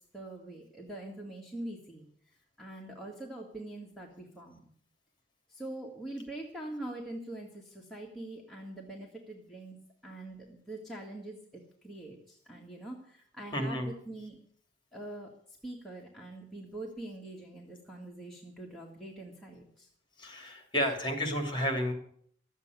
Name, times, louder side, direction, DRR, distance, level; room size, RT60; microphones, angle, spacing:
voice 1, 0.1-2.1 2.6-4.7 5.5-9.8 10.0-14.4 14.9-15.3 15.6-19.9, right 1 dB, ahead, -3 dB, 1.9 m, -44 dB
voice 2, 13.5-13.9 20.2-21.9, equal, 25° left, 4 dB, 3.0 m, -31 dB
13.0 x 8.2 x 9.6 m, 0.62 s
head